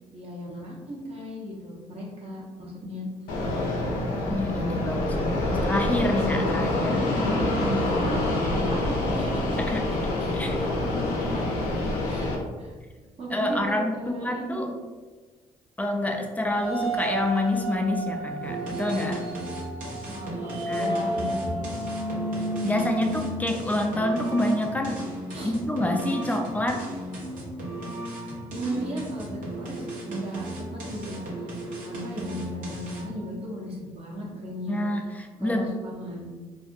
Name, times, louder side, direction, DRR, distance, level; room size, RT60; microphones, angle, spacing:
voice 1, 0.1-3.4 6.8-9.5 9.9-14.7 20.1-21.9 25.3-25.5 28.5-34.8 35.4-36.3, equal, 45° right, -4 dB, 0.8 m, -36 dB
Fixed-wing aircraft airplane, 3.3-12.3, left 2 dB, 85° left, 0.5 m, -26 dB
voice 2, 4.3-7.0 9.6-9.9 10.3-10.5 13.3-14.7 15.8-19.2 20.6-20.9 22.6-25.1 25.4-26.9 34.7-35.7, left 1 dB, 10° left, 2 dB, 0.4 m, -27 dB
sound 1, 16.5-24.3, equal, 10° right, 0.8 m, -32 dB
sound 2, 18.4-33.2, right 1 dB, 70° right, 0.9 m, -36 dB
2.5 x 2.1 x 2.6 m, 1.4 s
supercardioid pair, 60°, 14 cm